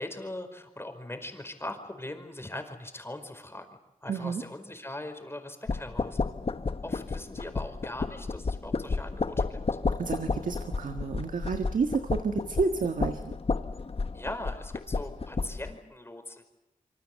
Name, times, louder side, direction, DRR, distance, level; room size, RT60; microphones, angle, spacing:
voice 1, 0.0-3.6 4.0-6.2 6.8-9.6 14.1-16.5, left 1 dB, 20° left, 6 dB, 4.8 m, -40 dB
voice 2, 4.1-4.4 10.0-13.4, right 4 dB, 75° right, 6 dB, 1.8 m, -30 dB
sound 1, 5.7-15.7, left 4 dB, 45° left, 1.3 m, -32 dB
26.5 x 25.0 x 7.8 m, 0.93 s
wide cardioid pair, 70°, 14 cm